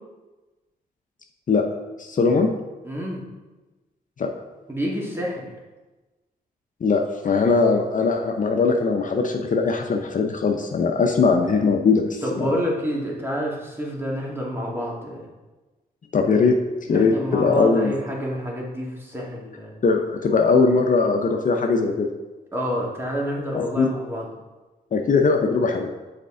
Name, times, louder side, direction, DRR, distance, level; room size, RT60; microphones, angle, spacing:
voice 1, 2.0-2.6 4.2-4.3 6.8-12.6 16.1-16.6 16.9-18.0 19.8-22.1 23.5-23.9 24.9-25.9, left 4 dB, 50° left, 3 dB, 0.6 m, -20 dB
voice 2, 2.8-3.2 4.7-5.5 12.2-15.2 16.9-19.8 22.5-24.3, equal, 15° right, -3 dB, 1.8 m, -28 dB
6.5 x 4.2 x 3.7 m, 1.2 s
cardioid pair, 60°, 17 cm